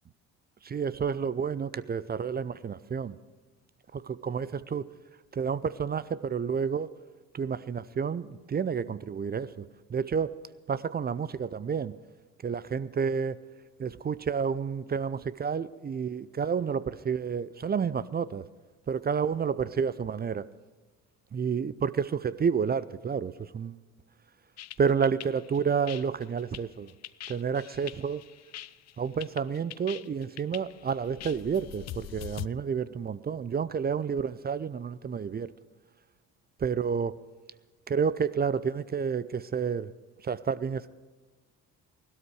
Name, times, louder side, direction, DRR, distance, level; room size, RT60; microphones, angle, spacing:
voice 1, 0.6-3.2 3.9-4.9 5.3-6.9 7.3-10.4 10.7-12.0 12.4-13.4 13.8-18.5 18.9-20.4 21.3-23.8 24.8-26.9 27.3-28.2 29.0-35.5 36.6-37.1 37.9-39.9 40.2-40.9, right 6 dB, 25° right, 17 dB, 0.5 m, -30 dB
sound 1, 24.6-32.5, left 13 dB, 40° left, 0.5 m, -43 dB
16.5 x 12.5 x 4.8 m, 1.3 s
hypercardioid pair, 55°, 42 cm